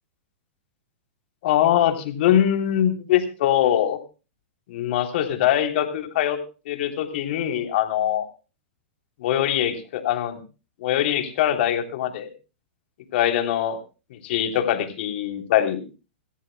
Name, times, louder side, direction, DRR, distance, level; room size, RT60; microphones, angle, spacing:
voice 1, 1.4-4.0 4.7-6.4 6.6-8.2 9.2-10.4 10.8-12.3 13.1-13.8 14.1-15.8, left 11 dB, 60° left, 4 dB, 3.4 m, -22 dB
27.5 x 14.0 x 2.2 m, 0.33 s
hypercardioid pair, 130°, 7 cm